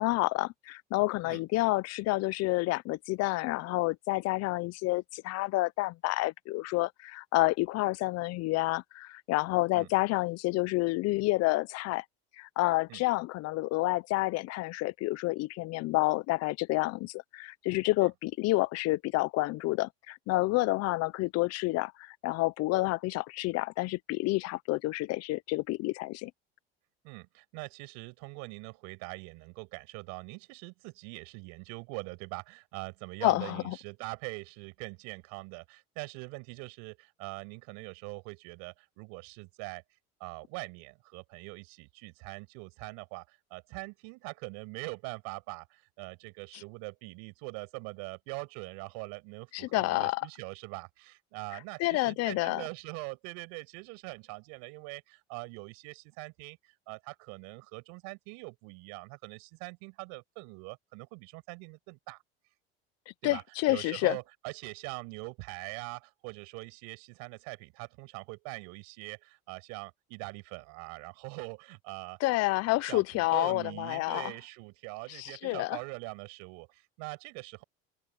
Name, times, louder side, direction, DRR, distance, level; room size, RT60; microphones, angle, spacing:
voice 1, 0.0-12.0 12.4-26.3 33.2-33.8 49.5-50.2 51.8-52.6 63.2-64.2 72.2-74.3 75.1-75.8, left 20 dB, 55° left, 0.9 m, -29 dB
voice 2, 27.0-39.8 40.2-62.2 63.2-63.4 63.7-72.2 72.8-77.6, right 31 dB, 70° right, 7.0 m, -43 dB
open air
supercardioid pair, 90°, 30 cm